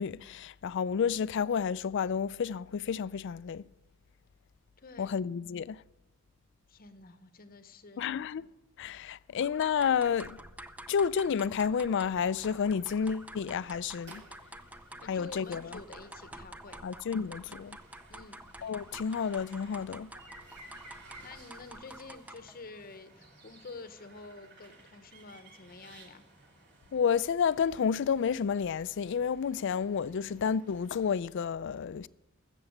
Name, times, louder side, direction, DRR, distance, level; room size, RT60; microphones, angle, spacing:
voice 1, 0.0-3.6 5.0-5.8 8.0-8.4 8.8-10.4 10.9-14.2 15.1-15.8 16.8-17.8 18.6-20.1 26.9-32.1, left 7 dB, 60° left, 0.4 m, -30 dB
voice 2, 4.8-5.3 6.7-8.1 15.0-16.8 18.1-18.4 20.5-20.6 21.2-26.2, left 3 dB, 45° left, 0.8 m, -49 dB
sound 1, 9.4-22.6, right 1 dB, 5° right, 0.5 m, -49 dB
sound 2, 12.1-31.1, right 2 dB, 55° right, 2.7 m, -57 dB
15.0 x 7.0 x 7.8 m
head